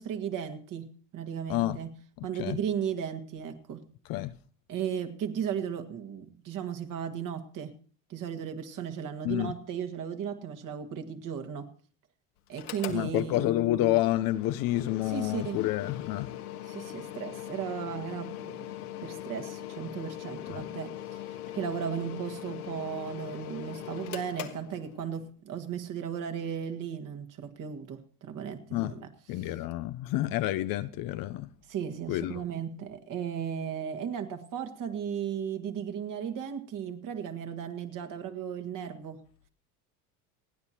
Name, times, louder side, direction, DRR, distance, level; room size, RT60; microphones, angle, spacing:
voice 1, 0.0-1.9 2.2-3.8 4.7-7.7 8.1-11.7 12.5-13.5 15.1-15.6 16.7-18.7 19.0-29.1 29.4-29.5 31.7-39.2, right 8 dB, 45° right, 2.0 m, -36 dB
voice 2, 2.2-2.6 4.1-4.3 9.2-9.5 12.9-16.3 20.5-20.6 28.7-28.9 29.3-31.5 32.1-32.4, left 15 dB, 50° left, 0.8 m, -29 dB
Mechanical fan, 12.5-25.3, left 12 dB, 80° left, 1.8 m, -41 dB
29.0 x 9.7 x 3.0 m
hypercardioid pair, 85°, 44 cm